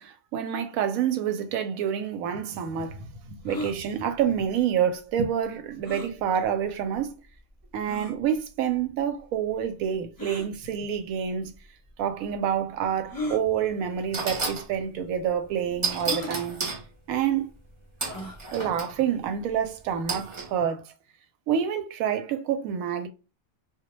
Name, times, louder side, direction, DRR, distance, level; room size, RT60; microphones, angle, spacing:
voice 1, 0.0-7.1 7.7-11.5 12.0-16.6 17.1-17.5 18.5-20.8 21.5-23.1, right 8 dB, 90° right, 1.0 m, -28 dB
sound 1, 3.5-3.8 5.8-6.1 6.9-7.0 7.9-8.1 10.2-10.5 11.5-11.6 13.1-13.4 14.3-14.5 14.8-14.9 16.0-16.3 18.0-18.4, equal, 25° left, 0.4 m, -34 dB
sound 2, 13.4-13.6 14.1-14.7 15.8-16.8 18.0-18.9 20.1-20.5, right 4 dB, 45° right, 0.4 m, -31 dB
2.2 x 2.2 x 2.9 m
omnidirectional pair, 1.4 m